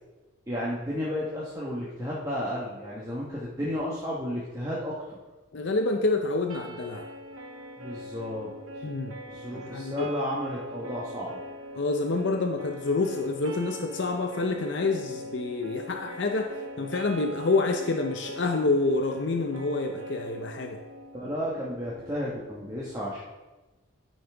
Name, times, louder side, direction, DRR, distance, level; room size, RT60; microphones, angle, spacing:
voice 1, 0.5-5.2 7.8-8.5 9.3-11.4 21.1-23.2, equal, 15° right, -6 dB, 1.1 m, -33 dB
voice 2, 5.5-7.1 8.8-9.1 9.5-10.1 11.7-20.8, left 3 dB, 60° left, 4 dB, 0.6 m, -28 dB
sound 1, 6.5-22.5, equal, 85° right, 1.0 m, -42 dB
12.5 x 5.4 x 3.4 m, 1.2 s
head